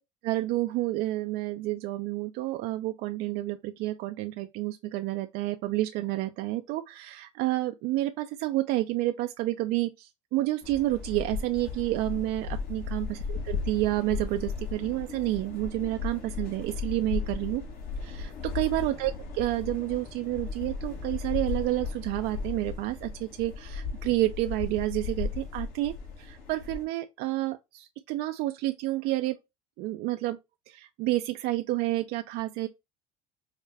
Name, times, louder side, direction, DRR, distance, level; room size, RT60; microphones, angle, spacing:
voice 1, 0.2-17.6 18.0-29.4 29.8-30.4 30.7-32.7, right 16 dB, 60° right, 0.4 m, -30 dB
sound 1, 10.6-26.8, left 5 dB, 55° left, 1.3 m, -36 dB
4.9 x 2.1 x 3.2 m
hypercardioid pair, 85°, 18 cm